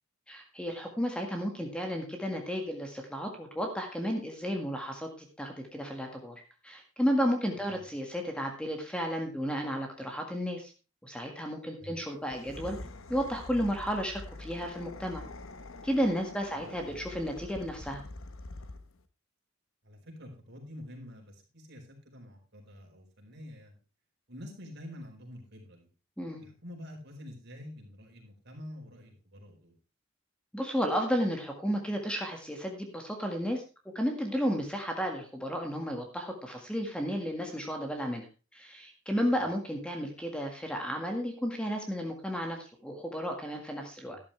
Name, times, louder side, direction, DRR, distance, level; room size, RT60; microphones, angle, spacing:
voice 1, 0.3-5.1 5.4-10.7 11.0-12.8 13.1-15.2 15.8-18.0 26.2-26.4 30.5-33.6 34.0-38.3 38.5-44.2, equal, 5° left, 3 dB, 1.7 m, -33 dB
sound 1, 12.2-19.0, left 2 dB, 70° left, 1.1 m, -45 dB
voice 2, 16.5-16.9 19.8-23.8 24.3-25.9 26.4-29.7 44.1-44.2, left 1 dB, 55° right, 1 dB, 4.5 m, -47 dB
12.5 x 11.5 x 3.3 m, 0.32 s
head